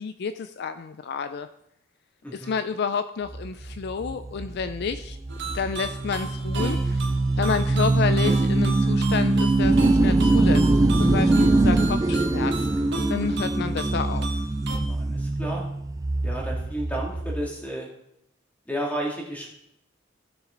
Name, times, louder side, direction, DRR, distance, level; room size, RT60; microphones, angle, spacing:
voice 1, 0.0-1.5 2.3-5.2 5.5-7.1 7.4-10.7 11.0-12.5 13.1-14.3, left 5 dB, 55° left, 10 dB, 0.4 m, -30 dB
voice 2, 2.2-2.5 13.2-13.5 14.9-15.6 16.2-17.9 18.7-19.5, right 1 dB, 10° left, -2 dB, 2.3 m, -32 dB
sound 1, 3.3-17.5, right 2 dB, 15° right, 0.3 m, -23 dB
sound 2, 5.3-14.8, right 3 dB, 60° right, 1.3 m, -36 dB
16.5 x 6.3 x 3.9 m, 0.78 s
head